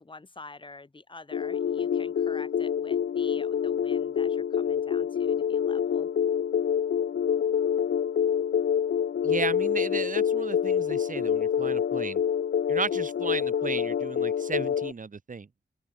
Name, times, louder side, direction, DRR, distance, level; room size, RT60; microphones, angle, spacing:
voice 1, 0.0-6.1, left 3 dB, 25° left, 2.7 m, -47 dB
sound 1, 1.3-14.9, left 8 dB, 90° left, 1.5 m, -27 dB
voice 2, 9.2-12.2 12.7-15.5, right 5 dB, 45° right, 3.2 m, -34 dB
open air
wide cardioid pair, 115°, 18 cm